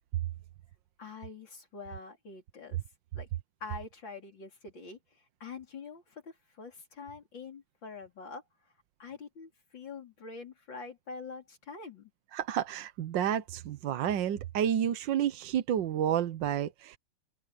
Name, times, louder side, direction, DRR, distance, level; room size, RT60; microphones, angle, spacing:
voice 1, 1.0-2.8 3.1-3.3 3.6-8.4 9.0-12.1, left 4 dB, 85° left, 4.4 m, -45 dB
voice 2, 12.3-17.0, right 10 dB, 75° right, 1.5 m, -30 dB
omnidirectional pair, 2.0 m